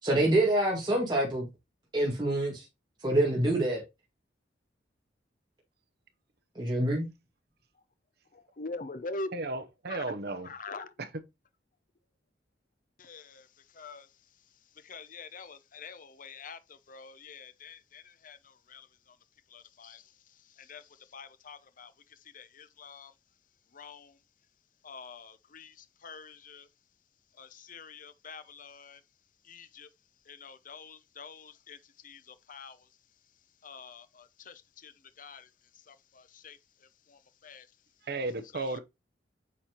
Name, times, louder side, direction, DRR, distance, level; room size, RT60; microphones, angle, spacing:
voice 1, 0.0-1.4 1.9-2.7 3.0-3.8 6.5-7.1, right 1 dB, 25° right, 2.1 m, -26 dB
voice 2, 8.3-9.3 9.9-10.0 10.4-10.9 13.0-13.5 13.8-14.1 14.8-16.6 16.9-18.4 18.7-18.9 19.5-20.0 20.7-20.8 21.1-21.9 22.3-23.1 23.7-24.1 24.8-25.7 26.0-26.7 27.4-29.0 29.5-29.9 30.3-31.8 32.0-32.8 33.6-34.9 35.2-35.5 35.9-36.6 37.1-37.6 38.5-38.8, left 3 dB, 45° left, 0.7 m, -45 dB
voice 3, 9.3-10.5 11.0-11.1 38.1-38.8, right 2 dB, 60° right, 0.9 m, -34 dB
8.5 x 4.3 x 3.0 m
head